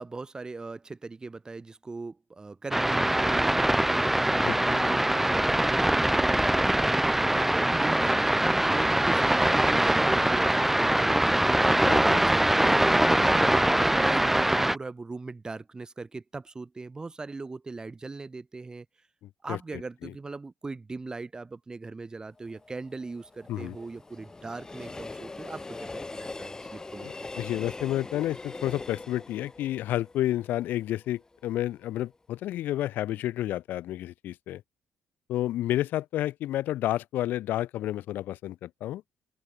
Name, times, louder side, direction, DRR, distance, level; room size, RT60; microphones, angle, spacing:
voice 1, 0.0-11.7 12.2-18.9 19.4-27.3, right 3 dB, 25° right, 1.3 m, -40 dB
sound 1, 2.7-14.8, right 1 dB, 5° right, 0.6 m, -23 dB
voice 2, 4.4-4.9 11.8-12.2 19.5-20.1 23.5-23.8 27.0-34.6 35.3-39.0, left 14 dB, 75° left, 0.5 m, -31 dB
Train, 22.4-31.4 31.8-31.9, left 3 dB, 20° left, 3.5 m, -42 dB
open air
cardioid pair, 95°, 3 cm